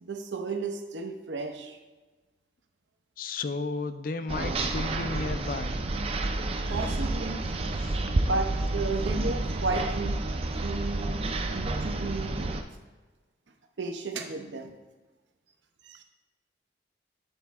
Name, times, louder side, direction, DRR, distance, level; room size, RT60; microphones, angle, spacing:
voice 1, 0.0-1.8 6.7-7.9 8.2-10.2 10.5-12.5 13.8-14.7 15.8-16.0, right 3 dB, 90° right, 5 dB, 0.7 m, -34 dB
voice 2, 3.2-5.8 7.8-8.0, left 3 dB, 50° left, 10 dB, 0.4 m, -33 dB
sound 1, 4.3-12.6, right 2 dB, 35° right, 0.4 m, -30 dB
8.2 x 4.2 x 3.5 m, 1.3 s
head